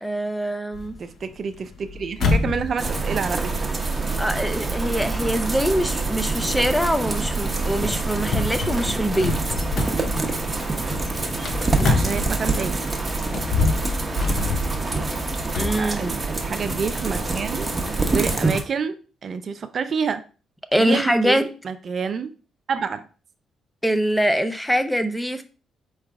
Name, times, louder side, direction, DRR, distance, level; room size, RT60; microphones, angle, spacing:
voice 1, 0.0-1.0 4.2-9.4 15.6-16.1 20.7-21.5 23.8-25.4, equal, 5° left, 9 dB, 0.5 m, -23 dB
sound 1, 0.7-12.7 13.2-15.8, left 3 dB, 60° left, 0.8 m, -28 dB
voice 2, 1.0-3.7 11.9-12.8 15.8-17.7 18.1-19.0 19.2-20.2 20.8-22.3 22.7-23.0, right 6 dB, 50° right, 10 dB, 0.4 m, -28 dB
sound 2, 2.8-18.6, right 3 dB, 20° right, 0.8 m, -26 dB
4.8 x 3.2 x 3.5 m, 0.35 s
cardioid pair, 90°, 0 cm